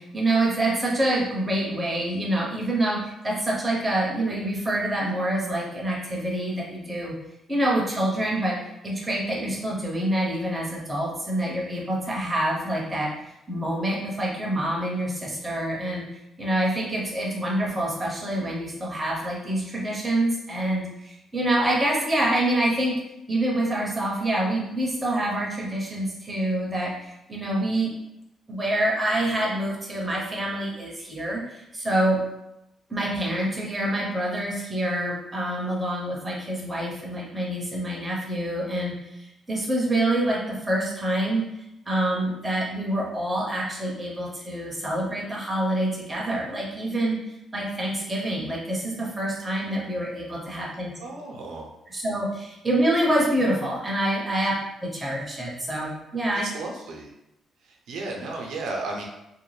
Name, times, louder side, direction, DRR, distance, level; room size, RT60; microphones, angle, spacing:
voice 1, 0.0-7.2 7.5-8.6 8.8-13.1 13.5-16.1 16.4-23.0 23.3-27.9 28.5-32.2 32.9-41.5 41.9-47.2 47.5-50.9 51.9-56.4, right 1 dB, 10° right, -4 dB, 0.6 m, -26 dB
voice 2, 51.0-51.7 54.5-54.6 56.4-57.1 57.6-59.0, right 2 dB, 80° right, 0 dB, 0.5 m, -34 dB
2.5 x 2.1 x 3.1 m, 0.88 s
cardioid pair, 170°, 0 cm